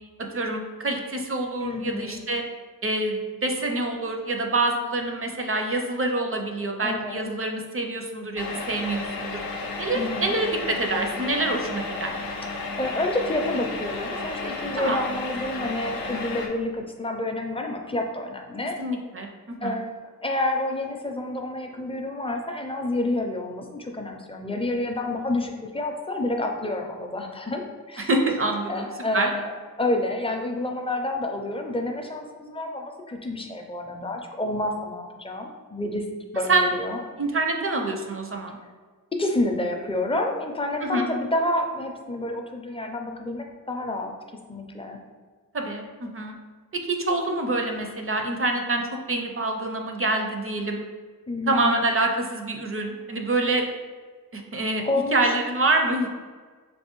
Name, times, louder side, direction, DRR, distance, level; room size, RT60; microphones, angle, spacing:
voice 1, 0.2-2.4 2.8-9.4 9.8-12.1 14.8-15.0 18.8-19.8 28.1-28.9 29.1-29.3 36.5-36.7 37.2-38.6 40.8-41.1 45.5-46.4 46.9-50.8 51.5-53.6 54.3-54.8 55.1-56.1, right 2 dB, 40° right, 3 dB, 0.5 m, -26 dB
voice 2, 1.6-2.2 6.8-7.3 9.9-10.3 12.6-18.8 19.6-28.1 28.7-29.5 29.8-36.1 36.3-37.0 39.1-44.1 44.5-45.0 51.3-51.7 54.8-55.2, left 2 dB, 15° left, 2 dB, 0.4 m, -29 dB
sound 1, 8.4-16.5, left 3 dB, 85° left, 0.5 m, -33 dB
3.3 x 2.6 x 3.0 m, 1.5 s
wide cardioid pair, 50°, 35 cm